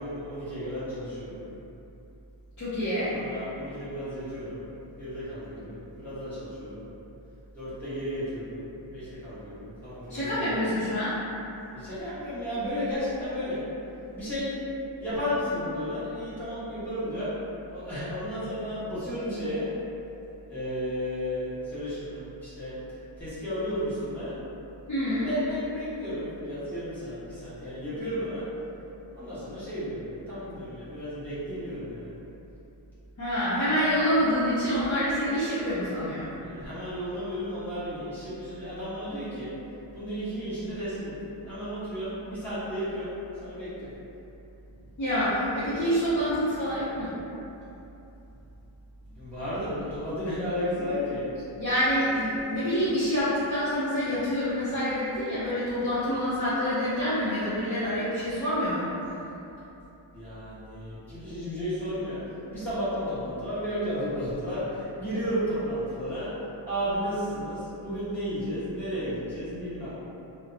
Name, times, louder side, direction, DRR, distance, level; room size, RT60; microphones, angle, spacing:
voice 1, 0.0-1.3 3.1-4.6 5.0-6.8 7.6-10.6 11.7-13.6 14.1-14.6 15.0-17.3 17.7-19.7 20.5-22.7 23.2-24.3 25.1-27.2 27.4-28.4 29.1-32.0 36.4-39.5 39.9-41.1 41.5-43.1 43.4-43.9 49.2-51.2 60.1-62.2 62.5-64.6 65.0-66.3 66.7-69.9, equal, 5° left, -15 dB, 0.9 m, -33 dB
voice 2, 2.6-3.1 10.1-11.1 24.9-25.3 33.2-36.3 45.0-47.1 51.6-58.8, equal, 40° left, -13 dB, 0.6 m, -27 dB
2.7 x 2.1 x 2.5 m, 2.9 s
wide cardioid pair, 110°, 49 cm